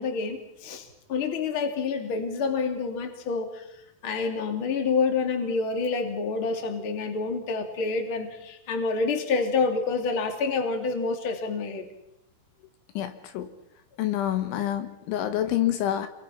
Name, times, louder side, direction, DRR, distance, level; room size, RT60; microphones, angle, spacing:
voice 1, 0.0-3.6 4.0-11.9, left 4 dB, 35° left, 4 dB, 2.8 m, -28 dB
voice 2, 13.0-13.5 14.0-16.1, left 12 dB, 75° left, 8 dB, 3.6 m, -27 dB
28.0 x 23.0 x 5.9 m, 0.84 s
omnidirectional pair, 5.6 m